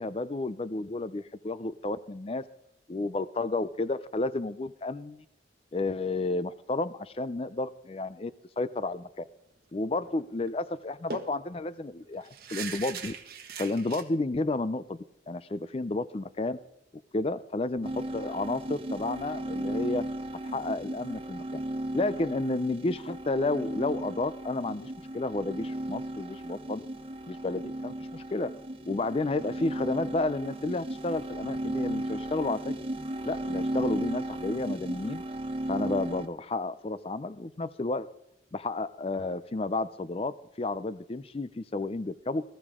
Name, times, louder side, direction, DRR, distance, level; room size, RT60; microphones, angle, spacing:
voice 1, 0.0-2.4 2.9-5.2 5.7-8.3 8.6-9.2 9.7-13.1 13.6-15.0 15.3-16.6 17.1-20.1 20.5-21.6 21.9-26.8 27.3-28.5 28.9-32.7 33.3-35.2 35.7-38.1 38.5-42.4, left 2 dB, 30° left, 15 dB, 0.4 m, -31 dB
sound 1, 10.0-10.2 10.5-10.6 11.1-14.0, right 5 dB, 50° right, 1.5 m, -40 dB
sound 2, 17.8-36.3, right 1 dB, 30° right, 0.9 m, -35 dB
20.0 x 14.0 x 3.7 m, 0.81 s
head